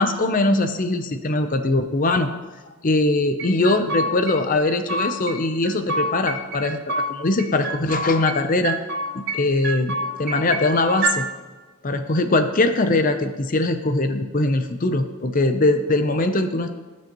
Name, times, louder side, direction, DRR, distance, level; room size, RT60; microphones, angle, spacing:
voice 1, 0.0-2.3 2.8-8.8 9.1-11.2 11.8-16.7, left 2 dB, 40° left, 8 dB, 0.6 m, -21 dB
sound 1, 3.4-4.4 4.6-5.4 5.6-7.1 7.4-8.4 8.6-9.4 9.6-11.2, right 2 dB, 50° right, 1.0 m, -27 dB
17.5 x 6.2 x 3.0 m, 1.3 s
head